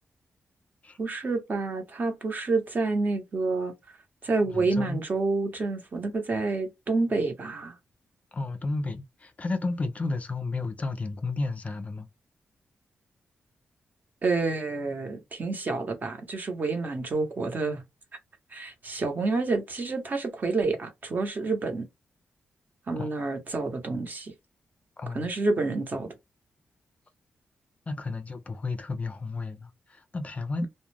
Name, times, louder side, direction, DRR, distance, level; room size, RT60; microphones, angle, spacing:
voice 1, 1.0-3.7 4.2-7.8 14.2-17.8 18.5-21.9 22.9-24.3 25.1-26.1, right 3 dB, 45° right, 0.8 m, -28 dB
voice 2, 4.5-5.0 8.3-12.1 23.0-23.1 25.0-25.3 27.9-30.7, left 3 dB, 35° left, 0.4 m, -32 dB
2.3 x 2.1 x 3.1 m
cardioid pair, 85°, 4 cm